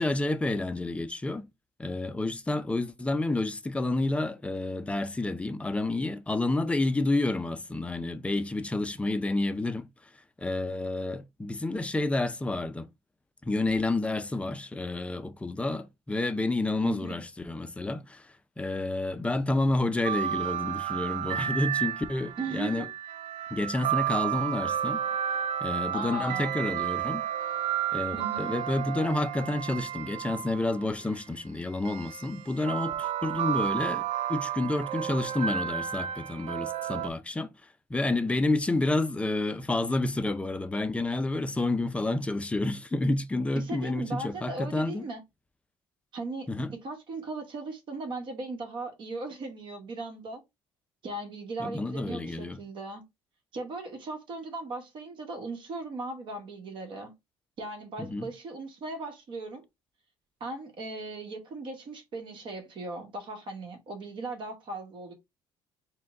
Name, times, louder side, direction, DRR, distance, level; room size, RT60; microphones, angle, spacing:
voice 1, 0.0-1.5 1.8-10.1 10.4-12.9 13.4-22.9 23.5-25.0 25.6-27.2 27.9-45.0 46.5-46.7 51.6-52.6 58.0-58.3, left 2 dB, 10° left, 0.4 m, -29 dB
voice 2, 16.8-17.2 22.4-22.9 25.9-26.5 28.1-28.5 43.5-45.2 46.1-50.4 51.0-53.0 53.5-57.1 57.6-59.6 60.4-65.1, right 2 dB, 50° right, 1.3 m, -38 dB
sound 1, 20.0-30.9 31.8-37.1, right 10 dB, 75° right, 0.4 m, -32 dB
4.4 x 2.2 x 3.7 m
cardioid pair, 125°, 11 cm